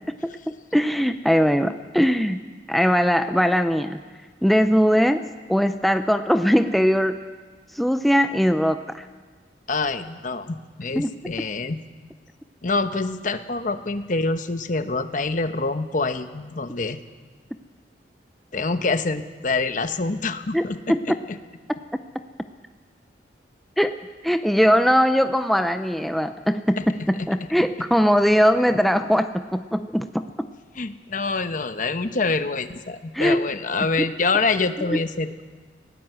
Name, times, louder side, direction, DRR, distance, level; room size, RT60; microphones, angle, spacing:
voice 1, 0.7-4.0 4.4-5.2 5.5-7.2 7.7-9.1 10.9-11.1 20.5-21.2 22.1-22.2 23.8-30.5 33.1-33.5 34.0-34.1 34.9-35.0, equal, ahead, 8 dB, 0.5 m, -21 dB
voice 2, 9.7-11.8 12.6-17.0 18.5-20.8 30.8-35.4, left 3 dB, 50° left, 10 dB, 1.0 m, -26 dB
20.5 x 17.0 x 8.0 m, 1.5 s
head